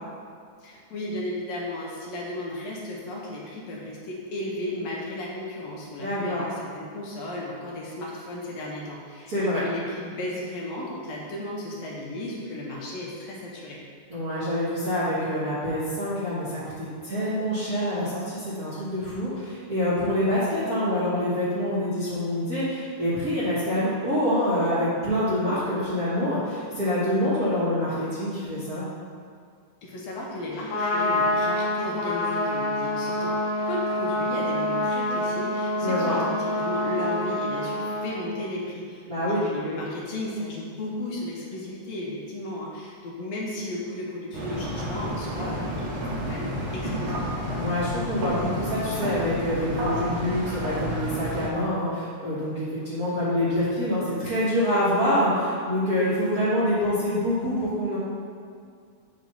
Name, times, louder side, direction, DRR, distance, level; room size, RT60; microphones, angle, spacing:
voice 1, 0.6-13.8 29.8-33.4 33.7-47.2, left 1 dB, 70° left, -3 dB, 1.8 m, -34 dB
voice 2, 5.9-6.4 9.3-9.6 14.1-28.8 35.8-36.2 39.1-39.4 47.6-58.0, left 1 dB, 50° right, -12 dB, 1.1 m, -26 dB
Trumpet, 30.5-38.1, left 1 dB, 45° left, 1.7 m, -27 dB
sound 1, 44.3-51.5, equal, 80° right, 2.3 m, -30 dB
7.5 x 3.0 x 5.3 m, 2.2 s
omnidirectional pair, 3.4 m